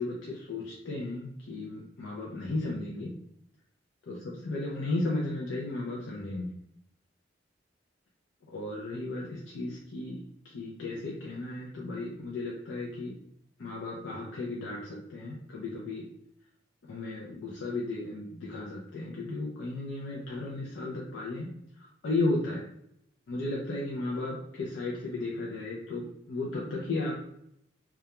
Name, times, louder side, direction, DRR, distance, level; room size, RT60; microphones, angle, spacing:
voice 1, 0.0-3.1 4.1-6.5 8.5-13.2 13.6-16.0 16.9-22.6 23.3-27.4, left 2 dB, 80° left, -4 dB, 0.5 m, -34 dB
2.3 x 2.1 x 2.9 m, 0.73 s
head